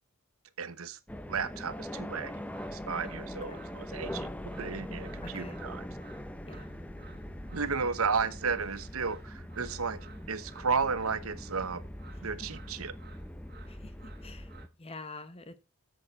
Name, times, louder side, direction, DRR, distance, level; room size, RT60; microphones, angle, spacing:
voice 1, 0.6-1.0 1.3-2.4 2.7-4.3 4.6-5.9 7.5-11.8 12.2-13.0, right 5 dB, 80° right, 1.0 m, -33 dB
sound 1, 1.1-14.7, equal, 5° left, 0.7 m, -42 dB
sound 2, 2.3-14.7, right 5 dB, 50° right, 1.9 m, -57 dB
voice 2, 5.2-5.6 6.5-6.7 13.7-14.5 14.8-15.6, left 3 dB, 30° left, 1.0 m, -46 dB
10.5 x 7.8 x 4.2 m
head